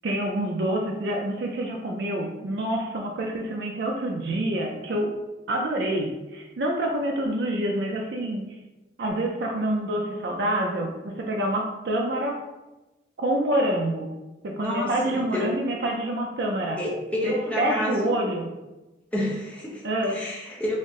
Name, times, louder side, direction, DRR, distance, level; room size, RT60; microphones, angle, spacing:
voice 1, 0.0-5.1 5.5-8.4 9.0-12.4 13.2-14.1 14.4-16.8 17.2-18.5 19.8-20.2, right 1 dB, 65° right, 0 dB, 0.4 m, -27 dB
voice 2, 14.6-15.5 16.8-18.1 19.1-20.8, left 1 dB, 5° left, -5 dB, 0.6 m, -29 dB
4.1 x 2.0 x 3.6 m, 1.1 s
head